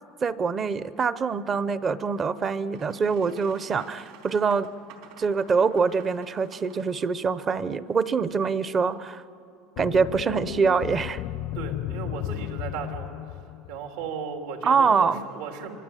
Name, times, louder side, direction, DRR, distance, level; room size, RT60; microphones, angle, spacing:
voice 1, 0.2-4.7 5.2-9.2 9.8-11.2 14.6-15.2, right 5 dB, 20° right, 15 dB, 0.6 m, -24 dB
Boat Water vehicle, 2.1-7.1, right 6 dB, 65° right, 4.0 m, -50 dB
sound 1, 9.8-14.0, left 14 dB, 50° left, 0.5 m, -34 dB
voice 2, 11.5-13.1 13.7-15.7, right 6 dB, 80° right, 3 dB, 3.2 m, -35 dB
26.0 x 25.0 x 9.0 m, 2.7 s
cardioid pair, 160°, 0 cm